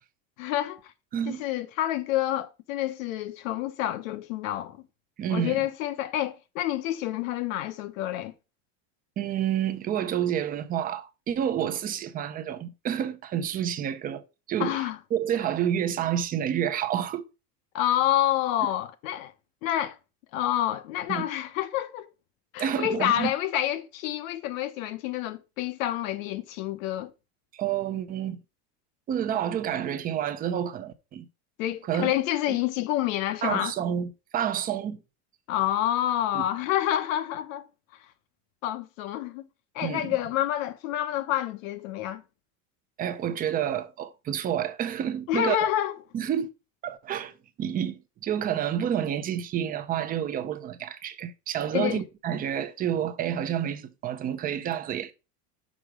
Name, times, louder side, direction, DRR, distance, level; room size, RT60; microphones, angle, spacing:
voice 1, 0.4-0.8 1.3-4.8 5.3-8.3 14.6-15.0 17.7-19.3 19.6-20.0 20.3-22.1 22.5-27.1 31.6-33.7 35.5-37.7 38.6-39.5 39.7-42.2 45.3-46.0 51.7-52.0, left 12 dB, 85° left, 1.0 m, -28 dB
voice 2, 1.1-1.4 5.2-5.7 9.2-14.8 15.1-17.2 18.6-18.7 21.1-21.2 22.6-23.3 27.5-28.4 29.1-31.3 31.9-32.1 32.5-32.6 33.4-35.0 36.3-36.5 39.8-40.2 43.0-45.7 46.1-46.5 46.8-47.3 47.6-55.1, right 9 dB, 25° right, 0.5 m, -29 dB
6.2 x 4.8 x 4.8 m
cardioid pair, 160°, 38 cm